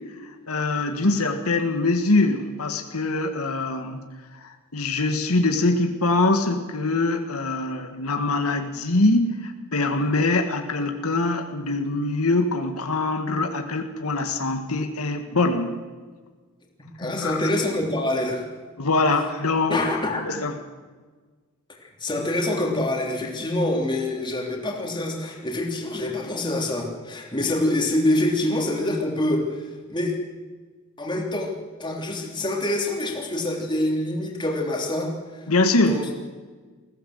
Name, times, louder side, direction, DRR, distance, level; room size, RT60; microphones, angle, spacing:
voice 1, 0.5-4.0 4.4-15.7 17.0-17.4 18.8-19.8 20.2-20.6 35.5-36.0, left 2 dB, 80° left, 5 dB, 1.7 m, -23 dB
voice 2, 17.0-18.4 19.7-20.2 21.8-30.2 31.0-31.5 31.8-35.4 35.8-36.0, left 1 dB, 20° left, 0 dB, 3.1 m, -26 dB
20.5 x 16.0 x 7.9 m, 1.4 s
head